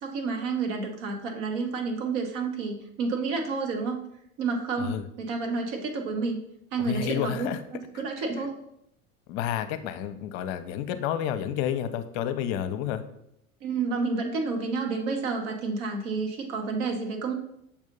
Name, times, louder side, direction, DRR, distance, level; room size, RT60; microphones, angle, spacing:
voice 1, 0.0-4.0 4.4-6.4 6.7-7.5 8.0-8.5 13.6-17.3, right 4 dB, 60° right, 3 dB, 1.5 m, -30 dB
voice 2, 6.8-7.6 9.3-13.0, left 10 dB, 55° left, 10 dB, 0.7 m, -30 dB
7.0 x 2.7 x 5.3 m, 0.75 s
hypercardioid pair, 85°, 41 cm